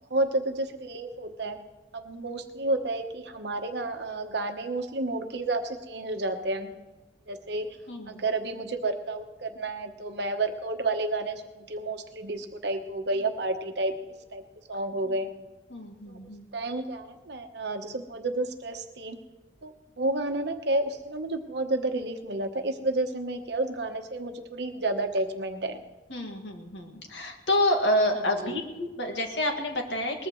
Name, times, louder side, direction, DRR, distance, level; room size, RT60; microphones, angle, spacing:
voice 1, 0.1-1.6 1.9-6.7 7.3-7.8 8.1-13.9 14.3-14.4 14.7-15.3 16.1-16.2 16.5-19.2 19.6-25.8 28.4-28.6, right 2 dB, 60° right, 5 dB, 1.1 m, -31 dB
voice 2, 7.9-8.2 15.0-15.1 15.7-16.5 26.1-30.3, left 1 dB, 70° left, 3 dB, 2.0 m, -28 dB
22.0 x 19.5 x 3.1 m, 1.1 s
head